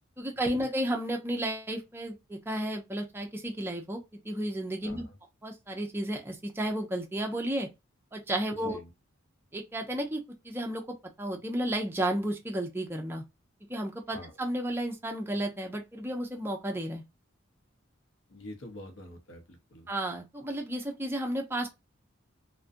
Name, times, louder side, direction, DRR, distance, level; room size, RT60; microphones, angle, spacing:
voice 1, 0.2-5.1 5.4-7.7 8.1-8.8 9.5-10.8 11.2-13.2 13.7-17.0 19.9-21.7, right 1 dB, 10° right, 0.5 m, -32 dB
voice 2, 4.8-5.2 8.6-8.9 14.1-14.4 18.3-19.9, left 1 dB, 65° left, 0.7 m, -46 dB
2.4 x 2.1 x 2.5 m
head